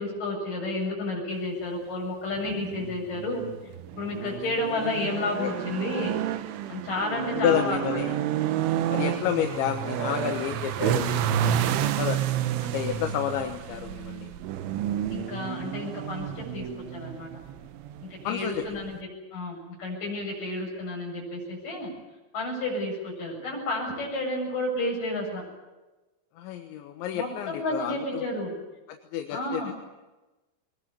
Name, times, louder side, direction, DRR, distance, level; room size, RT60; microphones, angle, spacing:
voice 1, 0.0-3.4 4.0-6.1 6.7-7.8 15.1-16.7 16.9-17.3 18.0-19.0 19.3-21.9 22.3-25.5 27.1-28.5 29.3-29.7, left 2 dB, 45° left, -1 dB, 9.3 m, -31 dB
sound 1, 2.4-19.0, right 11 dB, 90° right, 3.6 m, -30 dB
voice 2, 7.2-8.2 8.9-12.2 12.6-14.3 18.3-18.8 26.4-28.3 28.9-29.7, left 10 dB, 80° left, 5 dB, 3.6 m, -30 dB
22.5 x 21.5 x 9.8 m, 1.1 s
omnidirectional pair, 5.3 m